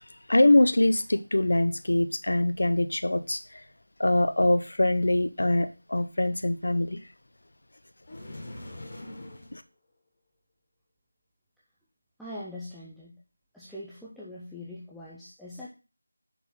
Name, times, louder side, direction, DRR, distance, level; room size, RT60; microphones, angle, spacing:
voice 1, 0.3-3.4 4.0-7.0 9.5-9.6, left 1 dB, 50° left, 10 dB, 0.6 m, -23 dB
sound 1, 8.0-9.6, left 1 dB, 20° left, 1.4 m, -42 dB
voice 2, 12.2-13.2 13.5-15.7, left 1 dB, ahead, -10 dB, 0.3 m, -42 dB
6.0 x 5.5 x 3.6 m, 0.30 s
figure-of-eight pair, 180°, 0 cm